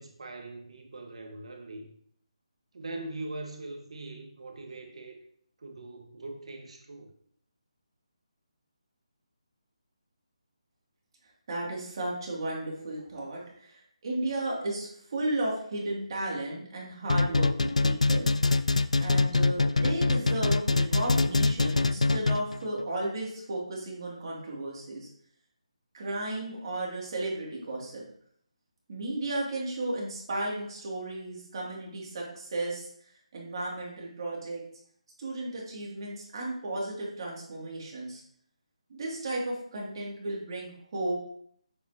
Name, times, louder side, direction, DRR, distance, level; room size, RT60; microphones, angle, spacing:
voice 1, 0.0-1.9 2.7-5.2 5.6-7.1, right 2 dB, 60° right, 3 dB, 1.6 m, -41 dB
voice 2, 11.5-18.3 19.0-25.1 25.9-28.0 28.9-32.9 33.3-34.6 35.2-38.2 38.9-41.1, right 1 dB, 45° right, -3 dB, 2.7 m, -34 dB
sound 1, 17.1-22.6, left 3 dB, 85° left, 0.4 m, -24 dB
7.3 x 5.5 x 2.9 m, 0.66 s
figure-of-eight pair, 160°, 4 cm